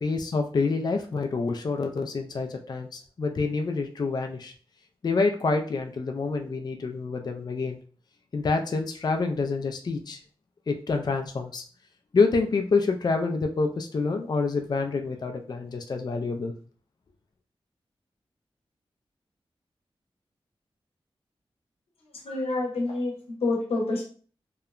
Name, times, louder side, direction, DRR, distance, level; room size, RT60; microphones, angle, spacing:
voice 1, 0.0-4.5 5.0-7.8 8.3-10.2 10.7-11.6 12.1-16.5, left 4 dB, 45° left, 4 dB, 0.3 m, -27 dB
voice 2, 22.2-24.0, left 2 dB, 85° left, -1 dB, 0.8 m, -28 dB
2.8 x 2.1 x 2.3 m, 0.42 s
cardioid pair, 60°, 10 cm